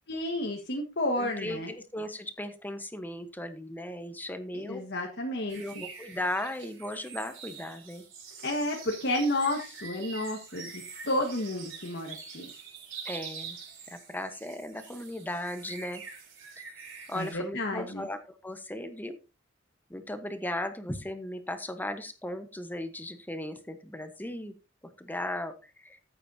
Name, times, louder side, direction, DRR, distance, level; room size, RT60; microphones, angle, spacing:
voice 1, 0.1-1.7 4.5-5.8 8.4-12.5 17.1-18.1, left 1 dB, 55° left, 1 dB, 1.6 m, -31 dB
voice 2, 1.2-4.8 5.5-8.0 13.0-13.6 13.9-16.0 16.6-16.7 17.1-18.2 18.4-19.2 19.9-24.5 25.0-26.0, left 1 dB, 10° left, 8 dB, 1.0 m, -37 dB
sound 1, 5.5-17.3, right 6 dB, 80° right, 5.0 m, -45 dB
13.5 x 8.9 x 2.8 m, 0.30 s
head